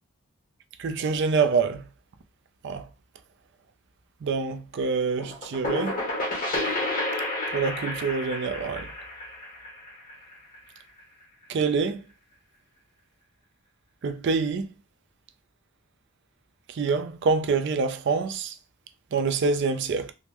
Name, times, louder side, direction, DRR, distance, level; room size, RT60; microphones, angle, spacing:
voice 1, 0.8-1.8 2.6-2.8 4.2-6.0 7.5-8.9 11.5-12.0 14.0-14.7 16.7-18.5 19.1-20.1, right 4 dB, 55° right, 0.4 m, -26 dB
sound 1, 5.2-10.8, left 1 dB, 40° left, 1.0 m, -31 dB
3.5 x 2.0 x 2.9 m
head